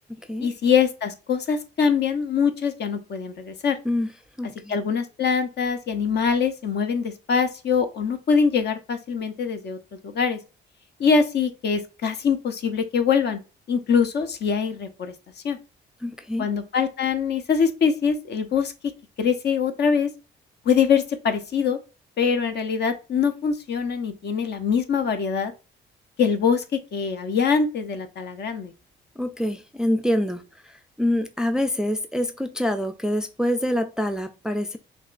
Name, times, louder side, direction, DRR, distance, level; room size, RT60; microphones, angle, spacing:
voice 1, 0.4-3.8 4.7-9.8 10.0-10.4 11.0-13.4 13.7-15.1 15.4-15.6 16.4-18.7 19.2-20.1 20.7-21.8 22.2-25.5 26.2-26.6 26.9-28.7, left 6 dB, 60° left, 0.8 m, -23 dB
voice 2, 4.4-4.7 16.0-16.5 29.2-34.8, left 1 dB, 5° right, 0.4 m, -26 dB
6.1 x 2.3 x 2.5 m
cardioid pair, 90°, 20 cm